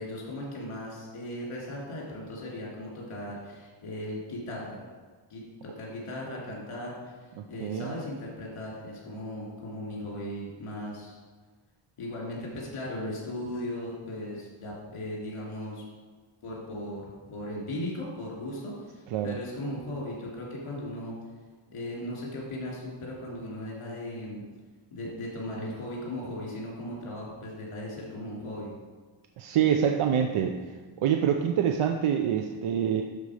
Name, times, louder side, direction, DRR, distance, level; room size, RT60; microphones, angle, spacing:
voice 1, 0.0-4.8 5.3-11.2 12.0-15.8 16.4-21.1 21.7-24.4 24.9-28.7, left 1 dB, 85° left, -3 dB, 2.9 m, -37 dB
voice 2, 7.6-7.9 19.1-19.4 29.4-30.6 31.0-33.0, right 8 dB, 80° right, 4 dB, 0.7 m, -25 dB
12.0 x 4.1 x 4.9 m, 1.4 s
wide cardioid pair, 165°, 49 cm